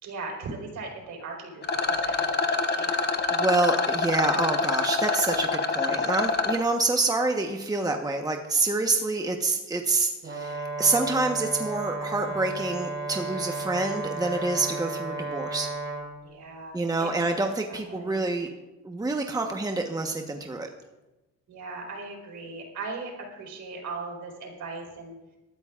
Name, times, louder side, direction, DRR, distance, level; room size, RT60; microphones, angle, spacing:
voice 1, 0.0-3.1 16.2-18.2 21.5-25.2, right 3 dB, 70° right, 0 dB, 4.9 m, -39 dB
Rattle, 1.6-6.6, left 4 dB, 35° left, 1.2 m, -26 dB
voice 2, 3.3-15.7 16.7-18.5 18.8-20.7, right 3 dB, 10° right, 3 dB, 1.2 m, -27 dB
Brass instrument, 10.2-16.1, right 3 dB, 40° right, 4.6 m, -33 dB
21.0 x 13.0 x 2.5 m, 1.0 s
cardioid pair, 90°, 30 cm